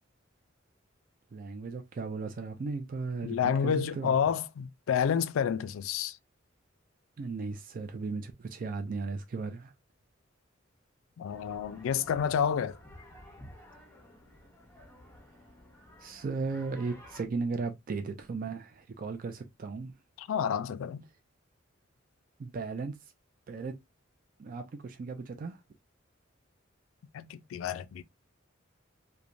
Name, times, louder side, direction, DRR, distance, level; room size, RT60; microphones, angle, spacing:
voice 1, 1.3-4.2 7.2-9.7 16.0-19.9 22.4-23.0 23.5-23.7 24.4-25.6, right 4 dB, 45° right, 0.4 m, -36 dB
voice 2, 3.2-6.2 11.2-12.8 20.2-21.0 27.1-28.0, left 7 dB, 80° left, 0.3 m, -29 dB
sound 1, 11.3-17.2, left 1 dB, 10° left, 0.7 m, -53 dB
3.0 x 2.2 x 2.5 m
head